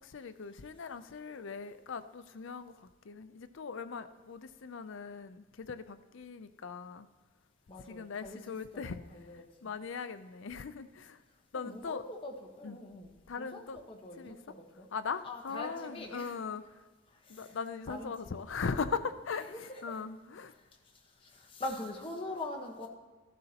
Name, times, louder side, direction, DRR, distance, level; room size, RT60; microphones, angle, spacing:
voice 1, 0.0-7.1 7.9-9.0 9.3-11.2 11.5-12.0 12.6-12.8 13.3-13.8 14.2-14.4 14.9-16.6 17.3-20.5, left 5 dB, 65° left, 11 dB, 0.5 m, -39 dB
voice 2, 7.7-9.5 11.5-13.1 13.4-14.9 15.2-16.4 17.1-17.6 17.9-18.1 19.5-20.0 20.5-22.9, left 2 dB, 25° left, 1 dB, 1.1 m, -43 dB
13.5 x 12.0 x 2.9 m, 1.3 s
head